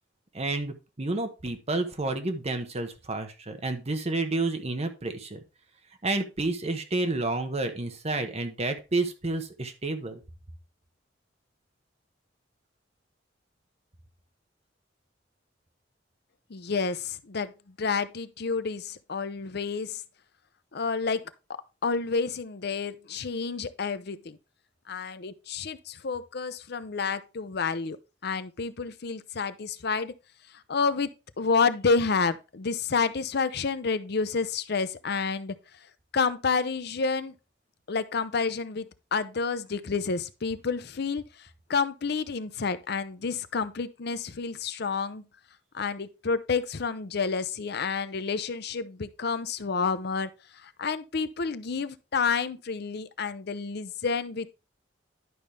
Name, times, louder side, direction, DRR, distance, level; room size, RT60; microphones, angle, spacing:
voice 1, 0.3-5.4 6.0-10.2, right 2 dB, 35° right, 1.1 m, -30 dB
voice 2, 16.5-17.5 17.8-20.0 20.7-21.2 21.8-24.4 24.9-28.0 28.2-30.1 30.7-31.1 31.4-35.5 36.1-37.3 37.9-38.9 39.1-41.2 41.7-45.2 45.7-50.3 50.6-54.5, left 5 dB, 60° left, 0.6 m, -29 dB
11.0 x 5.4 x 3.3 m
head